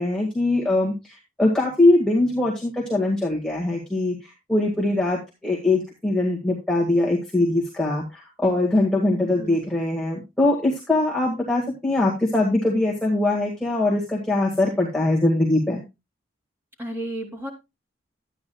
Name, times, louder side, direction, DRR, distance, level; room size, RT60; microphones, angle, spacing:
voice 1, 0.0-15.8, left 2 dB, 5° left, -4 dB, 1.9 m, -22 dB
voice 2, 9.1-9.6 16.8-17.5, right 1 dB, 10° right, 0 dB, 3.0 m, -33 dB
12.0 x 9.5 x 2.3 m, 0.24 s
head